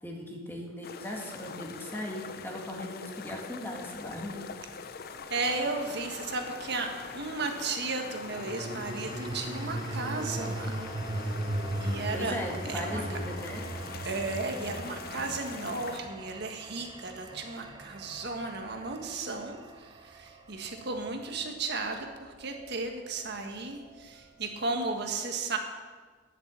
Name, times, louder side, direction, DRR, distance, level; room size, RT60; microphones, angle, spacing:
voice 1, 0.0-4.5 12.1-13.7, left 1 dB, 10° left, -1 dB, 2.0 m, -38 dB
sound 1, 0.8-16.0, left 6 dB, 50° left, 0.5 m, -43 dB
sound 2, 4.0-6.5 8.1-20.4, right 1 dB, 25° right, 0.5 m, -39 dB
voice 2, 5.3-10.8 11.2-11.3 11.8-12.4 12.7-13.0 14.0-25.6, right 3 dB, 60° right, 4 dB, 1.6 m, -34 dB
sound 3, 10.2-24.9, right 7 dB, 75° right, 1.8 m, -53 dB
11.0 x 7.3 x 7.5 m, 1.5 s
head